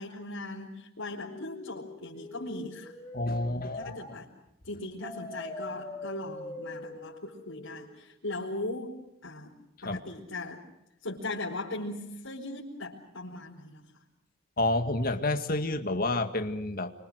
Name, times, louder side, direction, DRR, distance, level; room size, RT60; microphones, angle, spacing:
voice 1, 0.0-2.9 3.4-4.3 4.6-9.5 9.8-10.6 11.0-13.9, left 2 dB, 80° left, -5 dB, 4.8 m, -39 dB
sound 1, 1.2-4.0 5.0-8.0, left 2 dB, 20° left, 3.2 m, -43 dB
voice 2, 3.1-3.9 9.9-10.0 14.6-16.9, left 2 dB, 45° left, 7 dB, 2.0 m, -29 dB
28.0 x 25.0 x 6.5 m, 0.85 s
head